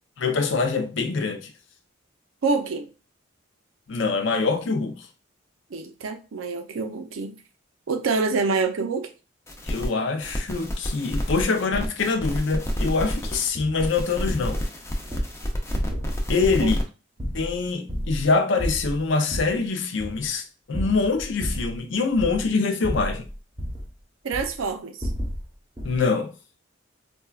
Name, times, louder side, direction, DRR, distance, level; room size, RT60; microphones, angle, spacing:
voice 1, 0.2-1.5 3.9-5.1 9.6-14.6 16.3-16.8 17.3-23.3 25.8-26.3, left 4 dB, 65° left, 0.5 m, -24 dB
voice 2, 2.4-2.9 5.7-7.4 7.9-9.1 16.6-16.8 24.2-25.1, right 4 dB, 85° right, 0.5 m, -26 dB
sound 1, 9.5-9.9 10.2-13.5 13.8-16.8, equal, 15° left, 0.4 m, -29 dB
sound 2, 13.5-13.8 14.3-14.6 15.0-15.3 15.7-16.2 16.4-16.8 17.2-18.3 18.6-19.6 20.0-20.3 20.7-21.8 22.1-22.5 22.8-23.9 24.3-24.6 25.0-25.4 25.8-26.0, equal, 20° right, 0.8 m, -31 dB
4.1 x 2.2 x 2.3 m
head